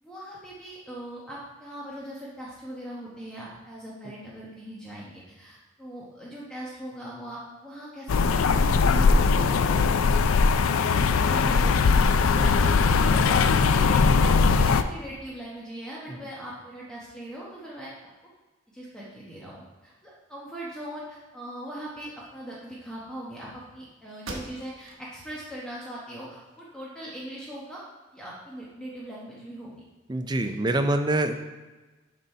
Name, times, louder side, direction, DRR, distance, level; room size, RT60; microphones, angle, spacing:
voice 1, 0.0-10.1 10.9-17.9 18.7-27.8 28.1-29.8, right 1 dB, 5° left, -6 dB, 1.0 m, -40 dB
sound 1, 8.1-14.8, left 4 dB, 80° left, 0.4 m, -20 dB
sound 2, 24.2-25.0 25.5-25.6 26.1-27.0, right 2 dB, 70° right, 1.0 m, -41 dB
voice 2, 30.1-31.3, right 2 dB, 20° right, 7 dB, 0.4 m, -25 dB
7.5 x 4.0 x 5.5 m, 1.2 s
head